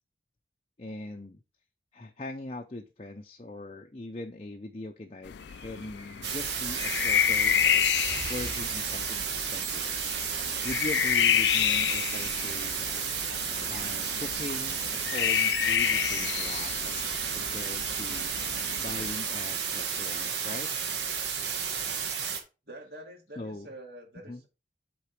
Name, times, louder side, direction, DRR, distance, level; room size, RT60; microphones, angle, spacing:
voice 1, 0.8-1.4 1.9-13.0 13.7-18.3 18.8-20.7 23.4-23.7 24.3-24.4, left 2 dB, 35° left, 3 dB, 0.6 m, -41 dB
sound 1, 5.3-19.1, left 10 dB, 75° left, 0.4 m, -30 dB
sound 2, 5.4-11.1, equal, 30° right, 2.4 m, -49 dB
sound 3, 6.2-22.4, right 7 dB, 80° right, 1.8 m, -32 dB
voice 2, 22.7-24.5, right 1 dB, 60° right, 1 dB, 2.4 m, -46 dB
8.4 x 3.9 x 4.7 m, 0.29 s
head